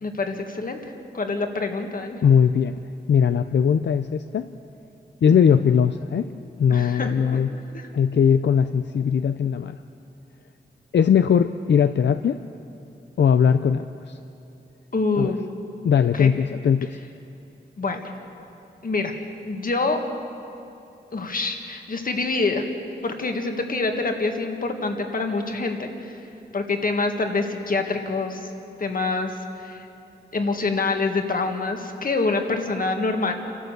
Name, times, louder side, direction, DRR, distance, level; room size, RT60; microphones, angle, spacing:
voice 1, 0.0-2.2 6.7-7.4 7.7-7.9 14.9-15.4 16.1-16.3 17.8-18.1 18.8-20.0 21.1-22.6 23.0-26.1 26.5-28.4 28.8-29.3 29.6-29.9 30.3-33.3, left 3 dB, 50° left, 4 dB, 1.8 m, -26 dB
voice 2, 2.2-2.8 3.1-4.5 5.2-6.3 6.6-7.5 7.9-9.8 10.9-12.4 13.2-14.2 15.2-15.3 15.8-17.0, left 7 dB, 80° left, 9 dB, 0.5 m, -19 dB
29.0 x 12.5 x 8.1 m, 2.8 s
wide cardioid pair, 135°, 18 cm